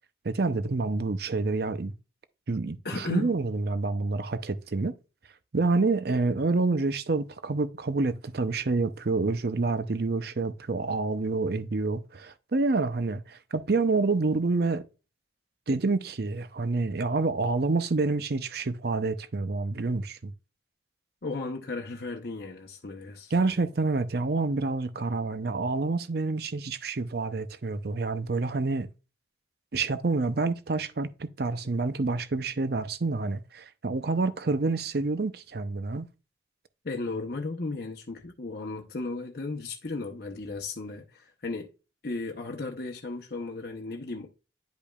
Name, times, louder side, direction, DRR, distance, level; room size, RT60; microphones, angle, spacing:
voice 1, 0.2-1.9 2.5-4.9 5.5-14.9 15.7-20.3 23.3-28.9 29.7-36.1, right 3 dB, 55° right, 0.6 m, -28 dB
voice 2, 2.8-3.3 21.2-23.3 36.8-41.7 42.0-44.3, left 3 dB, 55° left, 0.8 m, -35 dB
10.5 x 5.2 x 2.3 m
head